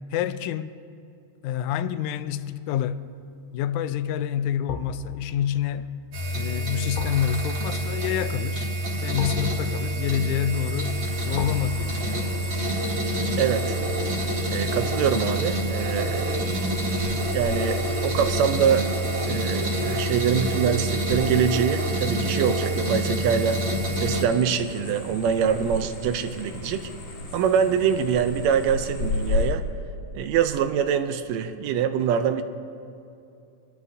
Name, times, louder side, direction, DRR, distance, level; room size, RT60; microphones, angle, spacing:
voice 1, 0.1-0.8 1.4-3.1 3.5-5.9 6.3-8.7 9.0-12.3, left 9 dB, 85° left, 1.9 m, -28 dB
sound 1, 2.9-3.3 4.7-15.7 16.0-16.1, left 4 dB, 65° left, 1.3 m, -40 dB
sound 2, 6.1-24.2, right 1 dB, 40° right, 2.5 m, -27 dB
sound 3, 10.5-29.5, left 3 dB, 50° left, 2.3 m, -35 dB
voice 2, 13.4-13.8 14.5-16.5 17.3-18.9 19.2-23.7 24.0-26.9 27.3-29.6 30.1-32.4, right 8 dB, 80° right, 1.7 m, -24 dB
26.0 x 11.5 x 2.7 m
omnidirectional pair, 3.4 m